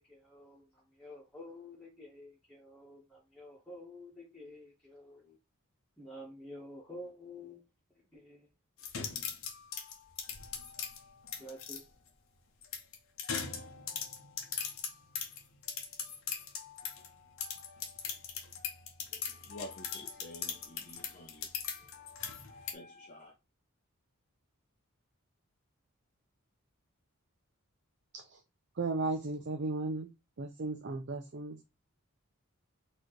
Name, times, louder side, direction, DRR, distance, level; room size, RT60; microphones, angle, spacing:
voice 1, 0.0-5.4 6.0-7.6 8.1-8.5 9.0-9.2 11.4-11.8, left 1 dB, 5° left, 1.3 m, -50 dB
sound 1, 8.8-11.8 12.6-17.1 17.4-22.7, left 7 dB, 65° left, 0.9 m, -40 dB
voice 2, 19.1-21.5 22.0-23.3, left 1 dB, 35° left, 0.7 m, -50 dB
voice 3, 28.8-30.1 30.4-31.7, right 3 dB, 55° right, 0.6 m, -35 dB
4.3 x 3.0 x 3.2 m
head